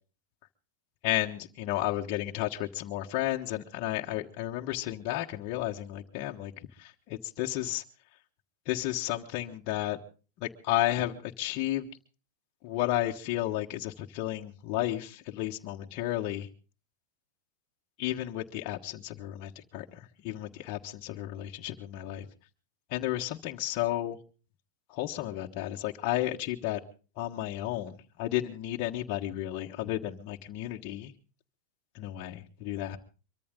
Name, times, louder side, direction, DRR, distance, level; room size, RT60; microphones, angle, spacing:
voice 1, 1.0-6.5 6.8-7.8 8.6-10.0 10.4-11.9 12.6-16.5 18.0-22.3 22.9-24.2 24.9-26.8 27.2-31.1 31.9-33.0, left 14 dB, 50° left, 0 dB, 1.4 m, -32 dB
24.0 x 14.0 x 3.7 m, 0.36 s
hypercardioid pair, 125°, 0 cm